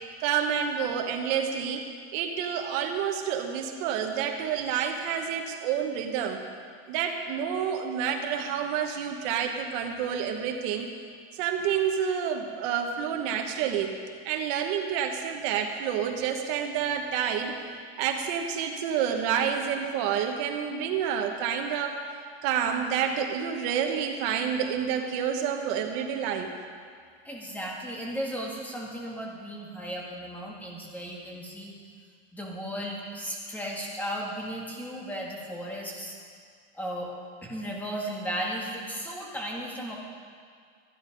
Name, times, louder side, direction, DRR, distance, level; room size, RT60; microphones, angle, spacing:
voice 1, 0.2-6.4 6.9-10.9 11.3-14.0 14.2-17.6 18.0-22.0 22.4-26.5, right 8 dB, 60° right, 4 dB, 1.3 m, -29 dB
voice 2, 27.2-31.7 32.3-36.2 36.7-37.1 37.4-40.0, equal, 5° left, -2 dB, 1.9 m, -35 dB
13.5 x 11.0 x 5.3 m, 2.1 s
cardioid pair, 160°, 31 cm